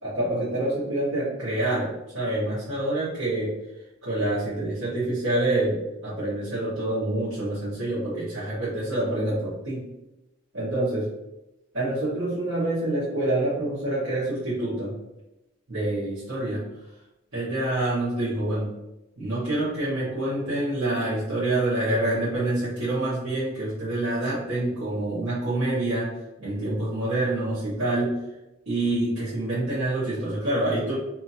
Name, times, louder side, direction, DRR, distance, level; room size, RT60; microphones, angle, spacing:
voice 1, 0.0-9.9 10.5-11.1 11.7-15.0 15.7-16.9 17.3-18.7 19.2-28.3 28.7-30.9, right 1 dB, 85° right, -12 dB, 1.1 m, -27 dB
2.7 x 2.6 x 2.7 m, 0.94 s
head